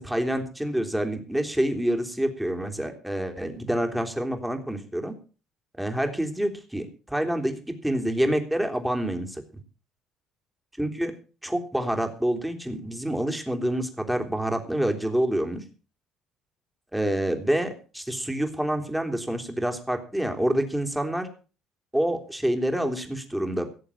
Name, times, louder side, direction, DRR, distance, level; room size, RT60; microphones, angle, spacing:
voice 1, 0.0-5.1 5.8-9.4 10.8-11.1 11.4-15.6 16.9-21.3 21.9-23.7, right 1 dB, 5° right, 4 dB, 3.4 m, -27 dB
17.5 x 7.0 x 7.1 m, 0.37 s
hypercardioid pair, 65°, 0 cm